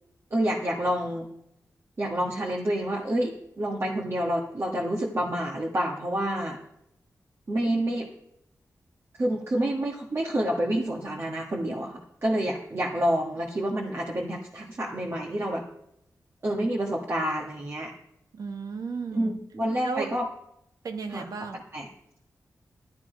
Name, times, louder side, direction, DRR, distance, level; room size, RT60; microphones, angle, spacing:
voice 1, 0.3-1.3 2.0-6.6 7.5-8.1 9.2-15.6 16.4-17.9 19.1-20.3 21.1-21.2 21.7-21.9, right 1 dB, 45° right, -2 dB, 1.4 m, -28 dB
voice 2, 18.3-19.4 19.8-20.1 20.8-21.6, right 4 dB, 85° right, 7 dB, 1.1 m, -34 dB
12.0 x 9.4 x 5.1 m, 0.80 s
wide cardioid pair, 75°, 6 cm